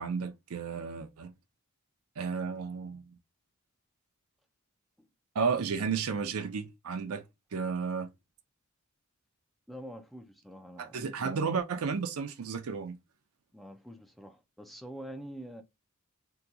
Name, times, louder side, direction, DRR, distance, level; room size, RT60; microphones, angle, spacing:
voice 1, 0.0-1.3 2.2-3.1 5.3-7.2 7.5-8.1 10.8-13.0, right 5 dB, 85° right, 0.5 m, -33 dB
voice 2, 9.7-11.0 13.5-15.6, equal, ahead, 0.4 m, -46 dB
2.8 x 2.2 x 3.6 m
head